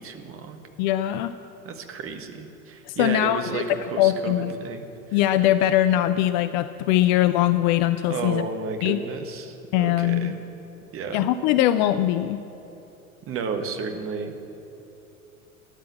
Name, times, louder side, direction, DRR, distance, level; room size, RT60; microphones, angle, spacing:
voice 1, 0.0-0.6 1.6-5.2 8.1-10.4 10.9-11.3 13.3-14.4, right 5 dB, 30° right, 6 dB, 1.4 m, -32 dB
voice 2, 0.8-1.3 2.9-3.6 4.0-4.5 5.1-8.4 8.8-9.0 9.7-10.3 11.1-12.4, left 13 dB, 35° left, 12 dB, 0.4 m, -21 dB
13.0 x 10.5 x 7.4 m, 2.9 s
figure-of-eight pair, 80°, 42 cm